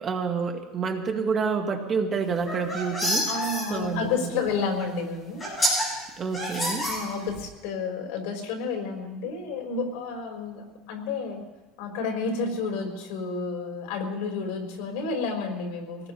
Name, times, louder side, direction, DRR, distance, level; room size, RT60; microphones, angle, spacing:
voice 1, 0.0-3.3 3.7-4.3 6.2-6.9, right 5 dB, 25° right, 4 dB, 1.3 m, -28 dB
sound 1, 2.3-3.6 4.8-4.9 5.4-5.8 6.3-7.4, equal, 15° left, 7.1 m, -27 dB
voice 2, 3.3-5.6 6.8-11.4 11.8-16.1, left 4 dB, 80° left, 2 dB, 3.9 m, -31 dB
25.0 x 19.0 x 2.9 m, 1.1 s
cardioid pair, 175°, 0 cm